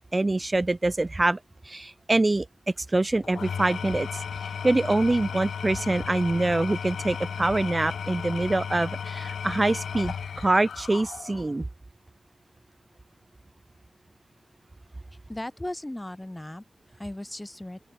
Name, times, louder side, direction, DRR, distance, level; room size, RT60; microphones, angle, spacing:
voice 1, 0.0-1.4 1.7-2.5 2.9-4.2 4.6-11.6, right 2 dB, 25° right, 0.4 m, -25 dB
Engine / Tools, 3.2-11.6, left 7 dB, 85° left, 4.0 m, -35 dB
voice 2, 15.3-17.8, left 1 dB, 10° left, 3.0 m, -37 dB
open air
wide cardioid pair, 95°, 0 cm